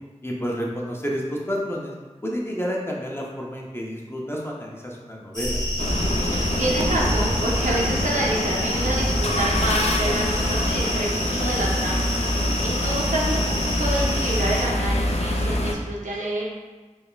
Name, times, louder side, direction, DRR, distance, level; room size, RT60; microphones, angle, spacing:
voice 1, 0.2-1.9 2.2-5.6, equal, 20° left, -2 dB, 0.7 m, -30 dB
sound 1, 5.3-14.6, left 1 dB, 35° left, 1.1 m, -30 dB
sound 2, 5.4-10.9, right 1 dB, 15° right, 0.4 m, -30 dB
sound 3, 5.8-15.7, left 1 dB, 55° left, 0.4 m, -25 dB
voice 2, 6.3-16.4, right 1 dB, 85° right, -4 dB, 0.8 m, -28 dB
4.1 x 3.3 x 2.4 m, 1.3 s
wide cardioid pair, 45°, 13 cm